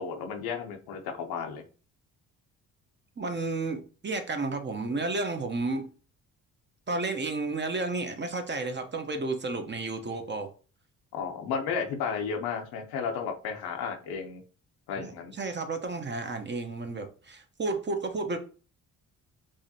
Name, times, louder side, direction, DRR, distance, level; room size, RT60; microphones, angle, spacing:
voice 1, 0.0-1.6 11.1-14.4 14.9-15.3, left 6 dB, 80° left, 4 dB, 0.8 m, -33 dB
voice 2, 3.2-5.9 6.9-10.5 15.0-18.4, right 3 dB, 30° right, 6 dB, 0.8 m, -32 dB
4.8 x 2.5 x 2.8 m, 0.38 s
supercardioid pair, 60°, 36 cm